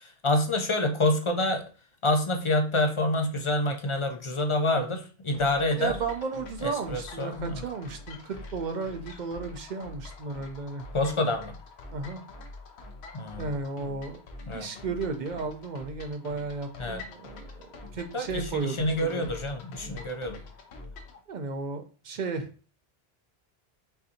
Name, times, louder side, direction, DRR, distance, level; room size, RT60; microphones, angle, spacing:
voice 1, 0.0-1.6 2.0-6.0 6.6-7.6 10.9-11.5 13.1-13.5 14.5-14.7 16.8-17.0 18.1-20.4, left 1 dB, 45° left, 5 dB, 0.4 m, -27 dB
sound 1, 5.3-21.2, left 2 dB, 85° left, 1.0 m, -45 dB
voice 2, 5.8-11.2 11.9-12.2 13.4-14.2 14.5-19.3 19.9-20.0 21.3-22.5, right 4 dB, 55° right, 6 dB, 0.6 m, -34 dB
5.6 x 2.6 x 2.7 m, 0.37 s
omnidirectional pair, 1.1 m